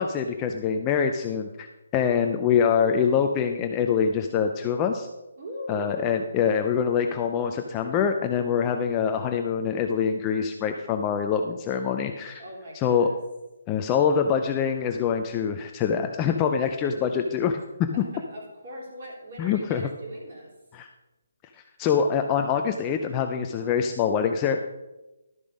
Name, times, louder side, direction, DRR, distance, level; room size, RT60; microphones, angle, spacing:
voice 1, 0.0-1.7 1.9-5.1 5.7-12.4 12.8-13.1 13.7-17.6 19.4-19.8 20.7-20.9 21.8-24.6, left 7 dB, 10° left, 5 dB, 0.4 m, -24 dB
voice 2, 5.4-6.4 12.4-13.2 17.9-20.5 23.6-24.0, equal, 35° right, -3 dB, 3.5 m, -40 dB
12.0 x 6.9 x 5.2 m, 1.0 s
hypercardioid pair, 175°, 0 cm